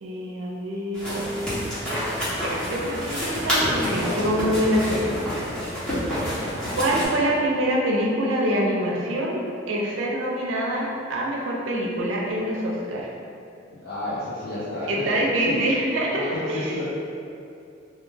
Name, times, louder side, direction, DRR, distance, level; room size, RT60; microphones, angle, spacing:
voice 1, 0.0-1.7 2.4-5.0 6.1-6.4 6.7-13.1 14.9-16.9, equal, 75° right, -2 dB, 0.4 m, -25 dB
sound 1, 0.9-7.1, equal, 5° left, 0.6 m, -28 dB
voice 2, 13.7-15.6 16.3-16.9, left 1 dB, 55° left, -10 dB, 0.4 m, -31 dB
2.2 x 2.2 x 3.1 m, 2.6 s
head